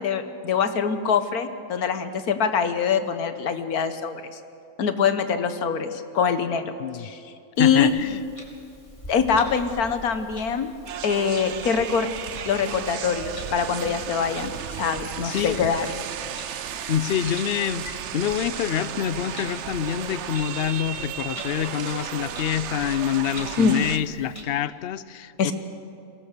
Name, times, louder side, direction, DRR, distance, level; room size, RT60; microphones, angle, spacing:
voice 1, 0.0-4.2 4.8-6.7 7.0-7.2 7.6-7.9 9.1-10.7 11.0-12.1 12.4-15.9 23.6-23.8 25.4-25.5, left 6 dB, 80° left, 10 dB, 1.6 m, -24 dB
Clock, 7.5-24.4, left 1 dB, 20° left, 2.5 m, -45 dB
voice 2, 7.6-8.2 15.2-15.6 16.9-25.5, left 10 dB, 60° left, 16 dB, 0.6 m, -26 dB
sound 1, 10.9-24.0, right 9 dB, 60° right, 0.9 m, -34 dB
23.0 x 18.0 x 6.7 m, 2.6 s
omnidirectional pair, 1.5 m